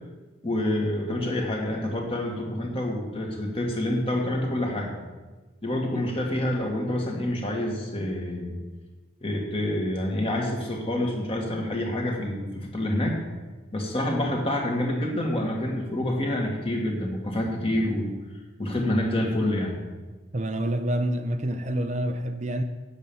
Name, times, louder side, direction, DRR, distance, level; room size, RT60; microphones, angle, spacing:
voice 1, 0.4-4.9 5.6-8.6 9.2-13.2 13.7-18.1 18.6-19.8, left 1 dB, 30° left, 1 dB, 2.0 m, -27 dB
voice 2, 20.3-22.6, right 1 dB, 35° right, 7 dB, 0.5 m, -27 dB
9.2 x 8.2 x 7.1 m, 1.3 s
head